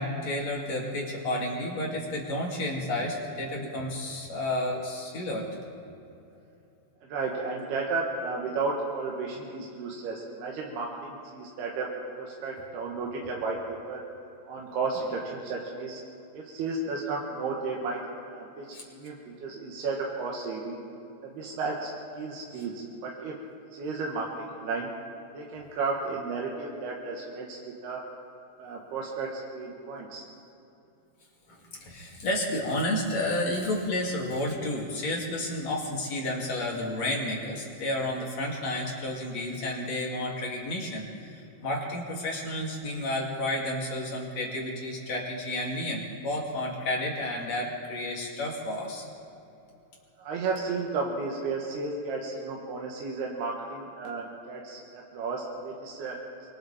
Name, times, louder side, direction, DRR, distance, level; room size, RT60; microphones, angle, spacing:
voice 1, 0.0-5.5 18.7-18.8 31.8-49.1, left 1 dB, 45° left, -2 dB, 3.7 m, -31 dB
voice 2, 7.0-11.9 12.2-14.0 14.5-16.0 16.3-18.0 18.3-20.8 21.2-21.9 22.2-23.4 23.7-24.9 25.3-28.0 28.6-30.2 50.2-56.2, right 4 dB, 85° right, -2 dB, 3.7 m, -33 dB
24.5 x 24.5 x 4.4 m, 2.8 s
omnidirectional pair, 4.4 m